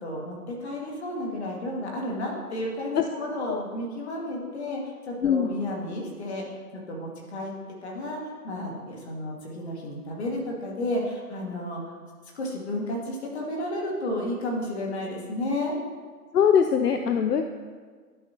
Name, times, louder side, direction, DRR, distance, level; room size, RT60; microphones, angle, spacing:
voice 1, 0.0-6.4 6.9-7.5 7.8-11.8 12.3-15.7, left 1 dB, 45° left, -2 dB, 2.0 m, -32 dB
voice 2, 16.3-17.4, left 7 dB, 75° left, 6 dB, 0.6 m, -21 dB
12.0 x 5.4 x 2.8 m, 1.6 s
figure-of-eight pair, 150°, 47 cm